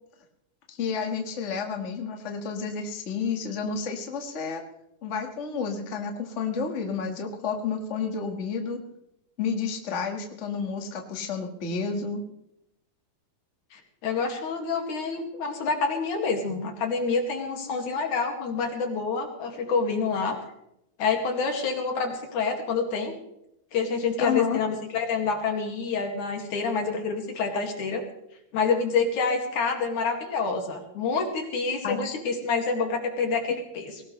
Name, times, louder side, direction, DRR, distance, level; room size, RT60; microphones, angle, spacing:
voice 1, 0.7-4.6 5.0-8.8 9.4-12.2 24.2-24.6 31.8-32.1, left 5 dB, 30° left, 3 dB, 1.5 m, -30 dB
voice 2, 13.7-20.4 21.0-23.1 23.7-28.0 28.5-34.0, left 4 dB, 70° left, 2 dB, 3.6 m, -27 dB
20.0 x 17.5 x 3.3 m, 0.83 s
omnidirectional pair, 3.6 m